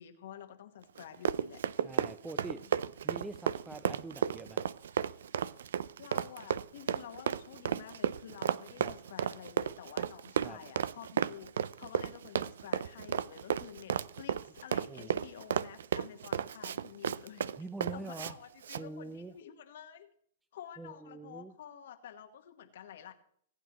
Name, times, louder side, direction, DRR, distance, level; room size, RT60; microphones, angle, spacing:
voice 1, 0.0-1.9 6.0-17.6 17.9-20.1 20.5-23.1, left 10 dB, 70° left, 6 dB, 1.3 m, -50 dB
Run, 1.0-18.3 18.6-18.8, right 8 dB, 75° right, 0.4 m, -33 dB
voice 2, 1.8-2.6 3.0-4.7 8.8-8.9 10.4-10.6 14.9-15.3 17.6-18.3 18.7-19.3 20.8-21.5, right 3 dB, 10° right, 11 dB, 0.5 m, -44 dB
19.5 x 9.0 x 3.0 m, 0.64 s
hypercardioid pair, 130°, 0 cm